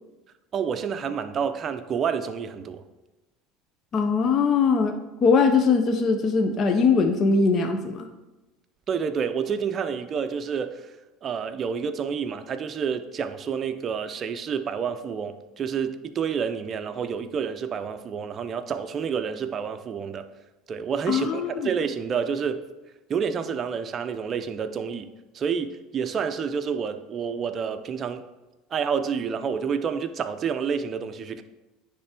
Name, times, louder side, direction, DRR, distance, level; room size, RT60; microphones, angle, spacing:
voice 1, 0.5-2.8 8.9-10.9 11.2-20.2 20.7-22.6 23.1-25.1 25.3-28.2 28.7-31.4, right 6 dB, 35° right, 9 dB, 0.5 m, -29 dB
voice 2, 3.9-8.1 21.1-21.7, left 5 dB, 35° left, 5 dB, 0.6 m, -21 dB
9.8 x 3.4 x 4.4 m, 1.1 s
supercardioid pair, 125°, 0 cm